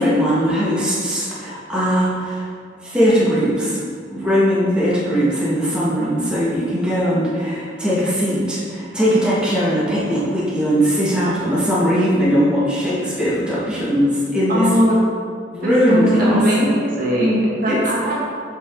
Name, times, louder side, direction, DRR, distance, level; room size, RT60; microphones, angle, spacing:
voice 1, 0.0-2.5 2.8-3.8 4.1-14.7 15.5-16.7 17.7-17.8, equal, 5° right, -9 dB, 2.0 m, -19 dB
voice 2, 14.5-15.0 15.6-18.1, equal, 50° right, -6 dB, 1.8 m, -19 dB
8.3 x 5.8 x 3.9 m, 2.2 s
head